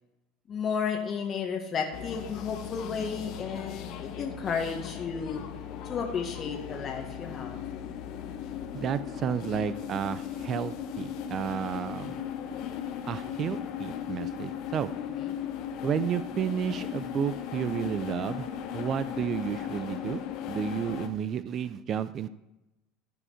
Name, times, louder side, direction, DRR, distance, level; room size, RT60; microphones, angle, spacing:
voice 1, 0.5-5.4 5.8-7.6 15.1-15.4, left 6 dB, 35° left, 2 dB, 1.5 m, -33 dB
sound 1, 1.9-21.1, left 9 dB, 55° left, 1.0 m, -37 dB
voice 2, 8.7-12.2 13.0-14.9 15.8-18.5 18.7-20.2 20.5-22.3, right 8 dB, 45° right, 14 dB, 0.5 m, -31 dB
14.5 x 5.0 x 5.0 m, 0.96 s
hypercardioid pair, 75°, 0 cm